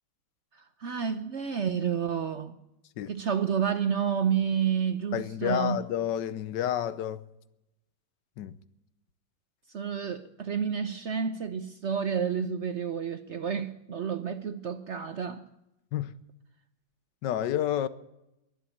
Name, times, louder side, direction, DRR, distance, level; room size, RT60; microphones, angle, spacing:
voice 1, 0.8-2.6 3.1-5.8 9.7-15.5, right 7 dB, 65° right, 0.6 m, -30 dB
voice 2, 5.1-7.2 8.4-8.6 15.9-16.1 17.2-17.9, left 11 dB, 70° left, 1.3 m, -30 dB
22.5 x 7.6 x 8.5 m
omnidirectional pair, 2.1 m